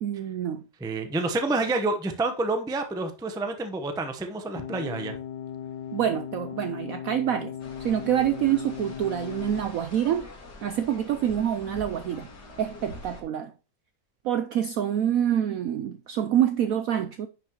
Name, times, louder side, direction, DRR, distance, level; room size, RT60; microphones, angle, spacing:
voice 1, 0.0-0.6 5.9-7.5 7.8-10.3 10.6-12.3 12.6-13.5 14.2-17.3, right 10 dB, 75° right, 0.8 m, -26 dB
voice 2, 0.8-5.2, right 2 dB, 5° right, 0.4 m, -28 dB
sound 1, 4.6-9.6, left 9 dB, 80° left, 1.3 m, -37 dB
sound 2, 7.6-13.2, left 2 dB, 65° left, 2.5 m, -45 dB
9.8 x 6.0 x 3.0 m
omnidirectional pair, 2.0 m